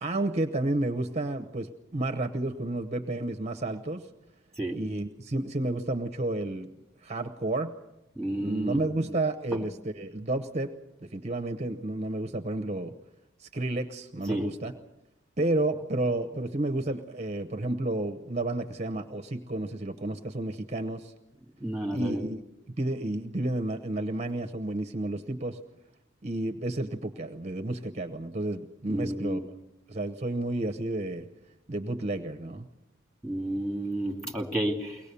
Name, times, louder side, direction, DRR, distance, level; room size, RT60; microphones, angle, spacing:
voice 1, 0.0-4.1 4.7-6.7 7.0-7.7 8.4-10.7 11.0-12.9 13.4-14.7 15.4-21.1 21.9-22.4 22.8-25.6 26.2-29.4 29.9-31.3 31.7-32.7, right 2 dB, 35° right, 5 dB, 0.9 m, -31 dB
voice 2, 8.2-8.8 9.5-9.6 14.3-14.5 21.6-22.2 28.9-29.5 33.2-35.0, right 1 dB, 5° left, 0 dB, 2.6 m, -31 dB
23.5 x 18.5 x 6.9 m, 0.95 s
head